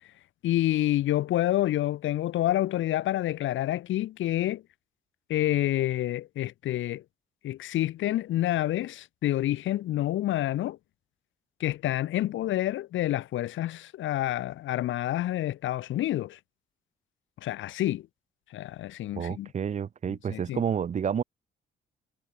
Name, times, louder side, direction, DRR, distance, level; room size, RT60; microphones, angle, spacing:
voice 1, 0.4-4.6 5.3-7.0 7.4-10.8 11.6-16.4 17.4-18.1 18.5-19.5 20.3-20.6, left 14 dB, 85° left, 1.6 m, -28 dB
voice 2, 19.1-21.2, right 8 dB, 35° right, 0.9 m, -29 dB
cardioid pair, 155°, 19 cm